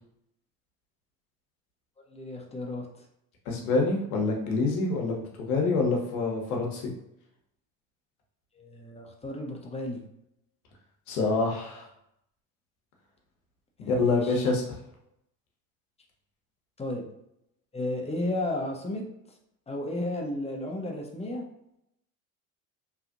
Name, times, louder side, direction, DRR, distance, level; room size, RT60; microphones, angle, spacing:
voice 1, 2.1-2.8 8.5-10.0 13.8-14.5 16.8-17.1 17.7-19.0 19.7-21.4, left 1 dB, 15° left, 0 dB, 0.6 m, -33 dB
voice 2, 3.5-6.9 11.1-11.9 13.9-14.6, left 3 dB, 80° left, 0 dB, 0.9 m, -26 dB
2.9 x 2.4 x 2.5 m, 0.79 s
hypercardioid pair, 75°, 43 cm